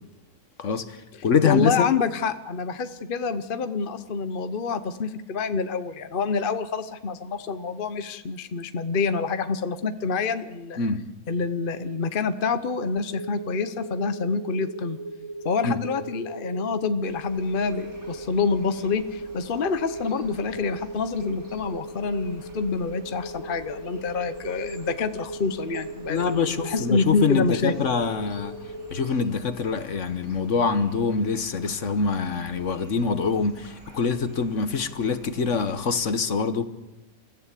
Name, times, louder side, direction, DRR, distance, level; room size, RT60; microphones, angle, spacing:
voice 1, 0.6-1.0 1.2-1.9 10.8-11.1 15.6-15.8 26.1-28.6 28.9-36.7, left 5 dB, 55° left, 1.4 m, -25 dB
voice 2, 1.4-10.8 11.3-15.0 15.4-27.7, left 4 dB, 40° left, 1.0 m, -27 dB
sound 1, 13.1-29.0, right 2 dB, 20° right, 2.8 m, -38 dB
sound 2, 17.1-36.1, right 1 dB, 80° right, 6.2 m, -49 dB
29.0 x 14.5 x 8.3 m
omnidirectional pair, 1.5 m